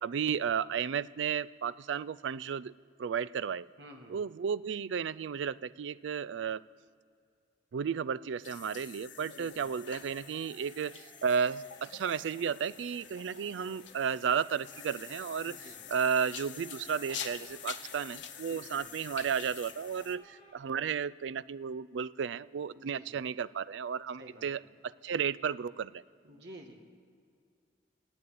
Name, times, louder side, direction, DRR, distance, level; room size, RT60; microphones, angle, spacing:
voice 1, 0.0-2.7 3.0-3.7 4.1-6.6 7.7-15.6 15.9-24.6 25.0-26.0, right 7 dB, 85° right, 19 dB, 0.4 m, -33 dB
voice 2, 3.8-4.2 9.2-9.6 15.4-15.8 18.5-18.9 22.7-23.2 24.2-24.5 26.2-26.7, equal, 70° right, 2 dB, 1.8 m, -51 dB
sound 1, 8.4-20.2, left 8 dB, 85° left, 0.8 m, -47 dB
sound 2, 9.6-20.5, left 1 dB, 30° left, 3.5 m, -59 dB
13.5 x 8.3 x 9.3 m, 2.3 s
head